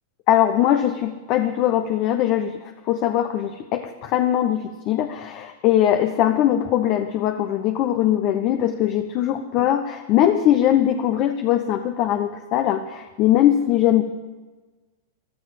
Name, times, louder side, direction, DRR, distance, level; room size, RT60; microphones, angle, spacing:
voice 1, 0.3-14.0, left 11 dB, 45° left, 7 dB, 1.0 m, -21 dB
15.0 x 12.0 x 7.6 m, 1.3 s
hypercardioid pair, 115°, 0 cm